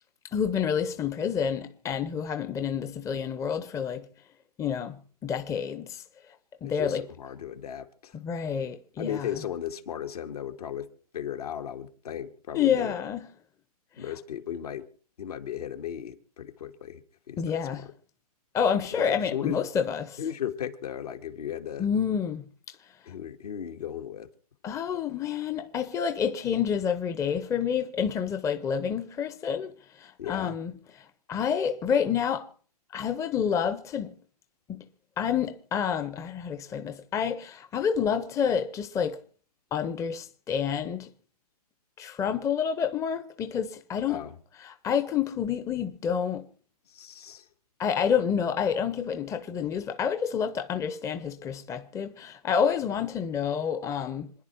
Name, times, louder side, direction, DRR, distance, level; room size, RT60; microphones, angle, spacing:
voice 1, 0.3-4.1 4.6-6.0 6.6-7.0 8.1-9.3 12.5-13.3 17.4-17.9 18.5-20.2 21.8-22.5 24.6-32.5 32.9-34.1 34.7-34.8 35.2-39.2 39.7-41.1 42.0-44.2 44.6-46.5 47.8-54.3, left 7 dB, 15° left, 0.8 m, -28 dB
voice 2, 6.6-8.2 9.0-10.9 11.1-12.9 14.0-14.9 15.2-17.9 18.9-19.6 20.2-21.9 23.0-24.3 30.2-30.6 44.1-44.3 46.9-47.5, left 9 dB, 70° left, 1.8 m, -36 dB
27.0 x 10.5 x 4.4 m
hypercardioid pair, 125°, 20 cm